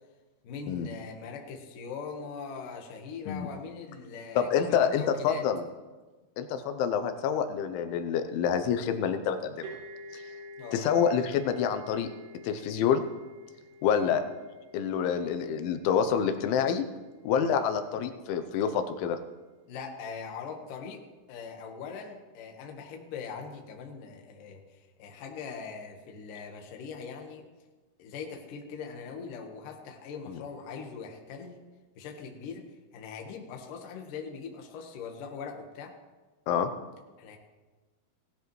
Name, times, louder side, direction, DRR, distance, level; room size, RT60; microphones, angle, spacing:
voice 1, 0.4-5.4 10.6-10.9 13.8-14.1 19.7-21.0 21.3-27.5 28.0-31.6 32.0-32.7 32.9-35.9 37.2-37.4, left 5 dB, 65° left, 3 dB, 2.3 m, -41 dB
voice 2, 4.4-5.6 6.4-9.7 10.1-10.2 10.7-12.1 12.4-13.0 13.8-14.2 14.7-16.9 17.2-19.2 30.3-30.4 36.5-36.7, left 7 dB, 85° left, 8 dB, 3.1 m, -27 dB
sound 1, 9.6-17.2, left 1 dB, 50° right, 4.0 m, -48 dB
17.5 x 13.0 x 3.1 m, 1.3 s
omnidirectional pair, 5.3 m